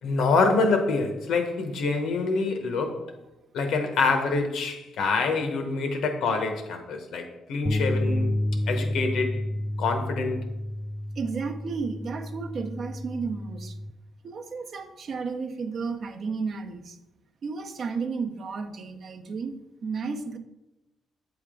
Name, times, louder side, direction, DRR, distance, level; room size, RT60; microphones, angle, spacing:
voice 1, 0.0-3.0 3.5-8.3 8.7-9.4 9.8-10.4, left 4 dB, 80° left, 0.9 m, -26 dB
sound 1, 7.7-13.9, left 1 dB, 30° left, 0.3 m, -30 dB
voice 2, 11.2-13.8 14.2-17.0 17.4-19.6 19.8-20.4, right 5 dB, 55° right, 0.6 m, -33 dB
7.5 x 3.5 x 3.7 m
cardioid pair, 90°, 0 cm